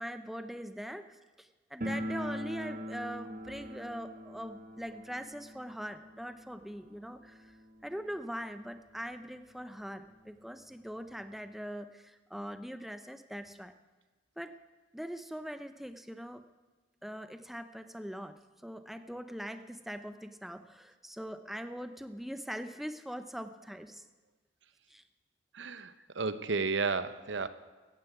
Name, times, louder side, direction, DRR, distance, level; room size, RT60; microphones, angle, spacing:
voice 1, 0.0-7.6 7.8-13.7 14.4-14.6 14.9-16.4 17.0-24.0 24.9-25.0 26.0-26.1, equal, ahead, 10 dB, 0.6 m, -42 dB
sound 1, 1.8-8.5 8.8-8.9 9.1-9.2 10.0-10.1 10.4-11.6, equal, 50° right, 1.2 m, -42 dB
voice 2, 25.5-27.5, right 4 dB, 75° right, 12 dB, 0.8 m, -32 dB
15.0 x 9.6 x 8.1 m, 1.3 s
head